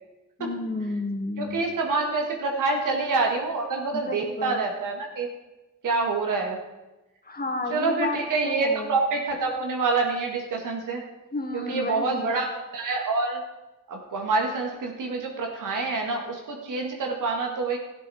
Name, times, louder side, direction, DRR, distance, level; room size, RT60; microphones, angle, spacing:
voice 1, 0.4-1.6 3.9-4.6 7.2-9.0 11.3-12.3, left 2 dB, 30° left, 3 dB, 2.0 m, -31 dB
voice 2, 1.4-5.3 5.8-6.6 7.7-11.0 11.5-13.4 13.9-17.8, right 3 dB, 85° right, 2 dB, 1.9 m, -27 dB
13.5 x 10.0 x 4.3 m, 1.1 s
cardioid pair, 55°, 31 cm